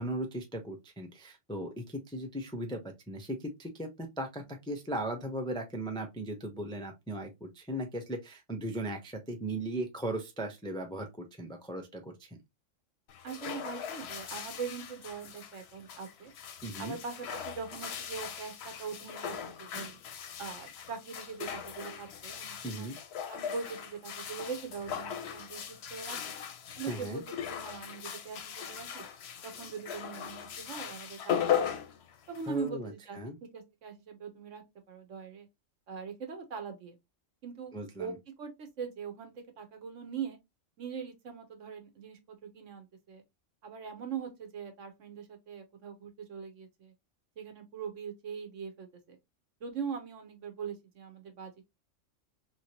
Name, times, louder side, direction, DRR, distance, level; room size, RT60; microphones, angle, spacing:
voice 1, 0.0-2.8 3.1-12.3 16.6-17.0 22.6-23.0 26.9-27.2 32.5-33.4 37.7-38.1, right 1 dB, 5° left, 0.3 m, -37 dB
sound 1, 13.1-32.7, left 8 dB, 65° left, 0.8 m, -38 dB
voice 2, 13.2-16.3 16.8-20.0 20.4-22.9 23.3-25.6 25.9-26.2 26.8-29.0 29.4-31.8 32.3-33.2 33.5-35.5 35.9-37.0 37.4-38.1 38.4-40.4 40.8-43.2 43.6-46.9 47.4-49.2 49.6-51.5, right 6 dB, 70° right, 1.2 m, -41 dB
3.1 x 3.0 x 2.8 m
omnidirectional pair, 1.3 m